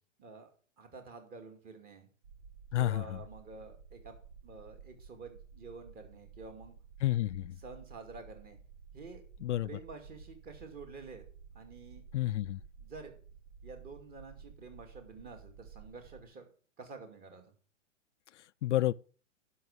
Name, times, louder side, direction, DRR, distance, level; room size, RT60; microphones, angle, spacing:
voice 1, 0.2-0.5 0.8-2.1 2.7-4.1 4.4-6.8 7.6-8.6 8.9-9.2 9.6-11.2 11.5-12.0 12.8-13.1 13.6-16.4 16.8-17.4, right 4 dB, 25° right, 2.3 m, -49 dB
sound 1, 2.2-16.3, right 6 dB, 75° right, 1.5 m, -54 dB
voice 2, 2.7-3.0 7.0-7.5 9.4-9.7 12.1-12.6 18.6-18.9, left 14 dB, 70° left, 0.5 m, -29 dB
11.0 x 5.7 x 6.9 m
hypercardioid pair, 140°, 37 cm